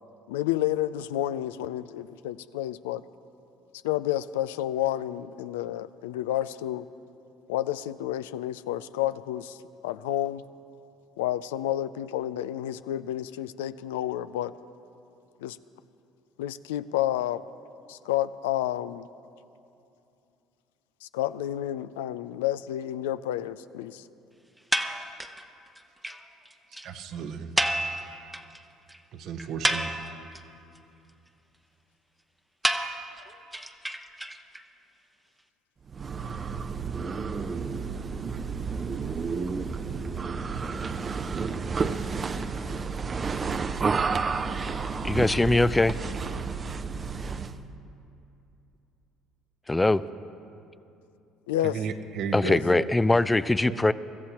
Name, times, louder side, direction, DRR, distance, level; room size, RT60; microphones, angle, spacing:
voice 1, 0.3-3.0 3.8-6.9 7.5-10.4 11.2-14.5 15.4-15.6 16.4-17.4 17.9-19.1 21.0-24.1 51.5-51.7 52.4-52.6, left 13 dB, 85° left, 14 dB, 0.3 m, -30 dB
sound 1, 24.7-25.4 25.8-25.9 26.0-26.2 26.5-26.6 26.7-26.9 27.6-28.6 28.9-29.0 29.4-30.4 32.6-34.6, right 1 dB, 5° right, 0.8 m, -29 dB
voice 2, 26.8-27.5 29.1-29.9 51.6-52.9 53.6-53.8, right 6 dB, 60° right, 8 dB, 0.9 m, -34 dB
sound 2, 35.9-47.6, right 5 dB, 35° right, 0.6 m, -31 dB
voice 3, 45.0-46.0 49.7-50.0 52.3-53.9, left 2 dB, 15° left, 16 dB, 0.4 m, -22 dB
24.5 x 14.0 x 2.9 m, 2.7 s
hypercardioid pair, 65°, 0 cm